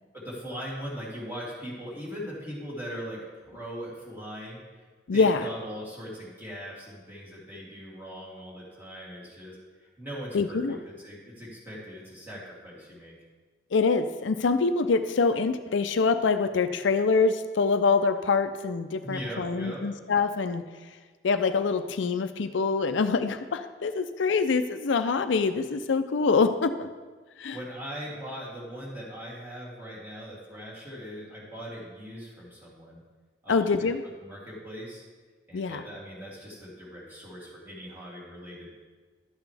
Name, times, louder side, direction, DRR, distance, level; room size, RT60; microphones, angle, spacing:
voice 1, 0.1-4.8 5.1-13.1 19.0-19.8 27.5-33.0 33.4-33.9 34.2-35.0 35.5-38.8, equal, 10° right, -7 dB, 2.9 m, -40 dB
voice 2, 5.1-5.5 10.3-10.8 13.7-20.6 21.2-26.9 27.4-27.6 33.5-34.0 35.5-35.8, left 4 dB, 80° left, 9 dB, 0.5 m, -25 dB
12.0 x 8.2 x 3.4 m, 1.4 s
head